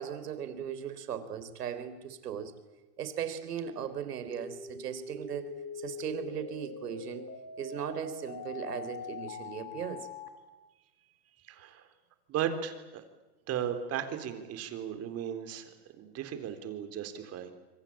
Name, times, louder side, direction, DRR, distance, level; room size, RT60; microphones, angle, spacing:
voice 1, 0.0-2.5 3.0-5.5 5.8-7.3 7.6-10.1, right 8 dB, 85° right, 11 dB, 4.0 m, -38 dB
sound 1, 4.3-10.3, left 5 dB, 80° left, 5.5 m, -43 dB
voice 2, 11.5-11.8 12.3-13.0 13.5-15.7 16.0-17.5, right 9 dB, 30° right, 8 dB, 3.8 m, -36 dB
27.0 x 24.0 x 8.7 m, 1.2 s
hypercardioid pair, 135°, 46 cm